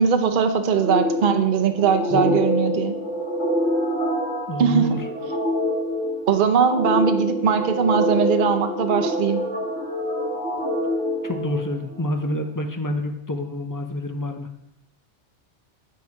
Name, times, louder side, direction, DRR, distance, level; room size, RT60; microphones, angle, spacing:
voice 1, 0.0-3.0 4.6-4.9 6.3-9.4, right 7 dB, 50° right, 7 dB, 0.8 m, -20 dB
sound 1, 0.8-12.1, left 1 dB, 75° left, 1.9 m, -26 dB
voice 2, 2.1-2.4 4.5-5.0 11.2-14.5, left 1 dB, 25° left, 5 dB, 0.5 m, -27 dB
9.7 x 4.6 x 4.7 m, 0.82 s
omnidirectional pair, 1.2 m